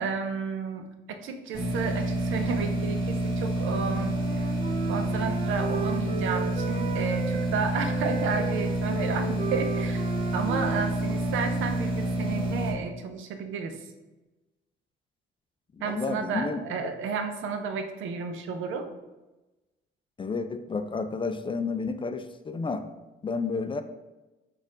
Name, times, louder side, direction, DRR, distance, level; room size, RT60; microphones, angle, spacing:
voice 1, 0.0-4.5 4.9-10.0 10.3-13.8 15.8-18.9, right 5 dB, 80° right, 7 dB, 0.6 m, -32 dB
sound 1, 1.5-12.7, right 1 dB, 25° right, 1.5 m, -28 dB
Wind instrument woodwind instrument, 3.7-7.5 7.8-12.3, right 4 dB, 40° right, 0.6 m, -36 dB
voice 2, 15.7-16.6 20.2-22.9 23.2-23.8, left 4 dB, 25° left, 9 dB, 0.3 m, -31 dB
4.3 x 2.4 x 4.8 m, 1.1 s
cardioid pair, 90°, 20 cm